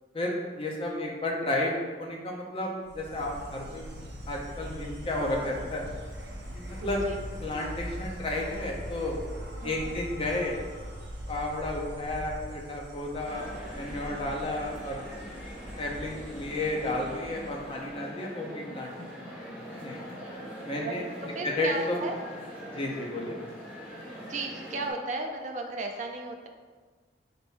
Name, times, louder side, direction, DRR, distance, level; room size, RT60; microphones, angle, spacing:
voice 1, 0.1-3.9 4.3-5.9 6.5-7.0 7.4-9.2 9.6-10.6 11.3-15.0 15.8-20.0 20.6-21.0 21.4-22.0 22.7-23.4, left 1 dB, 30° left, -1 dB, 0.6 m, -32 dB
Insect, 2.8-17.9, equal, 70° right, 0.9 m, -41 dB
voice 2, 6.8-7.2 9.6-10.0 20.7-22.2 24.2-26.5, right 3 dB, 45° right, 3 dB, 0.4 m, -35 dB
sound 1, 13.2-24.9, equal, 10° right, 1.4 m, -42 dB
4.1 x 2.6 x 3.5 m, 1.4 s
head